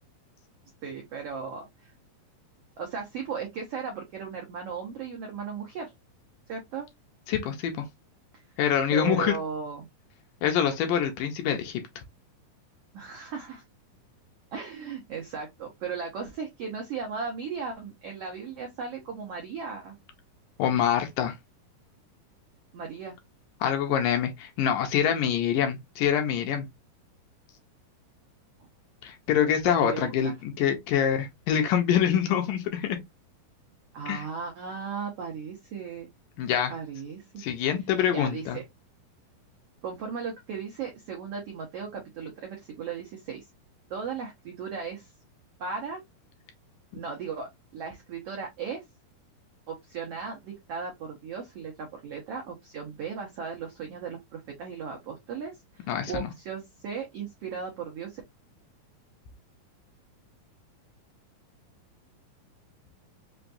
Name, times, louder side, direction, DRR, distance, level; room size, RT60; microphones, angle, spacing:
voice 1, 0.8-1.9 2.8-5.9 6.5-6.9 8.3-8.4 8.9-9.9 12.9-13.6 14.5-20.0 22.7-23.2 29.6-30.3 33.9-36.1 36.7-37.4 38.1-38.6 39.8-43.4 43.9-45.1 45.6-46.0 46.9-48.8 49.7-58.2, right 6 dB, 85° right, 1.3 m, -36 dB
voice 2, 7.3-7.9 8.6-9.3 10.4-11.8 20.6-21.3 23.6-26.7 29.0-33.0 34.1-34.2 36.4-36.7 37.4-38.6 55.9-56.3, left 9 dB, 75° left, 2.2 m, -25 dB
5.8 x 2.3 x 2.5 m
omnidirectional pair, 4.1 m